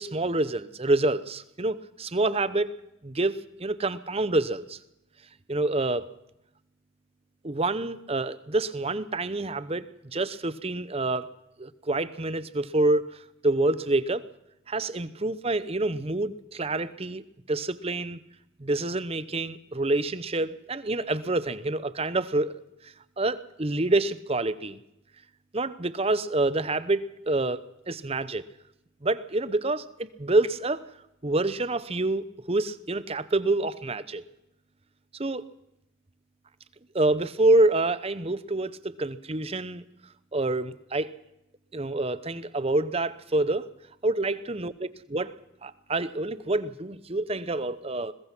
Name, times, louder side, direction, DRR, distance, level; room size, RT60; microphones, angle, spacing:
voice 1, 0.0-2.7 3.0-4.8 5.5-6.1 7.4-9.9 10.1-11.3 11.6-14.2 14.7-17.2 17.5-18.2 18.6-22.6 23.2-24.8 25.5-28.4 29.0-30.8 31.2-34.2 35.1-35.4 36.9-39.8 40.3-41.1 41.7-43.7 44.0-48.1, right 2 dB, 30° right, 15 dB, 0.8 m, -27 dB
22.0 x 20.5 x 6.1 m, 0.86 s
head